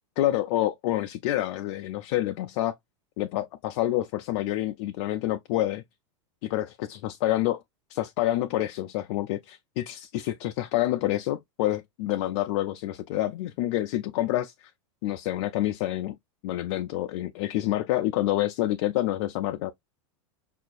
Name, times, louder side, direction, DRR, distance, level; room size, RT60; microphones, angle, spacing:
voice 1, 0.2-2.7 3.2-5.8 6.4-7.6 7.9-14.7 15.0-16.1 16.4-19.7, left 14 dB, 60° left, 0.4 m, -28 dB
5.5 x 2.5 x 2.4 m
hypercardioid pair, 115°, 16 cm